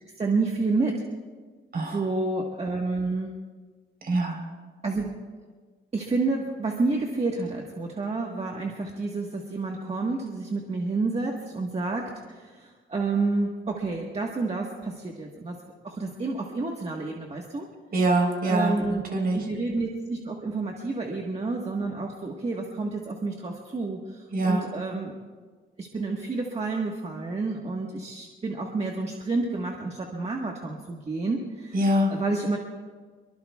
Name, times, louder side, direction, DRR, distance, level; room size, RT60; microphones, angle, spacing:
voice 1, 0.2-1.0 1.9-3.3 4.8-5.1 5.9-15.6 15.8-17.7 18.4-19.0 19.3-25.2 25.8-31.8 32.1-32.6, right 3 dB, 30° right, 0 dB, 1.4 m, -29 dB
voice 2, 1.7-2.1 4.0-4.4 17.9-19.5 24.3-24.6 31.7-32.2, right 1 dB, 45° right, 2 dB, 4.0 m, -24 dB
24.0 x 23.5 x 2.4 m, 1.5 s
wide cardioid pair, 145°, 21 cm